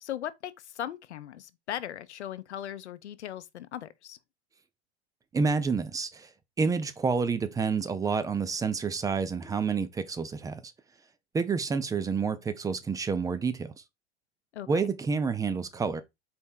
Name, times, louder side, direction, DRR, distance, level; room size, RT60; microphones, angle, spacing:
voice 1, 0.0-4.2 14.5-14.9, left 11 dB, 85° left, 0.6 m, -38 dB
voice 2, 5.3-6.3 6.6-10.6 11.3-13.7 14.7-16.0, right 5 dB, 10° right, 0.4 m, -29 dB
4.3 x 3.0 x 3.7 m
hypercardioid pair, 100°, 33 cm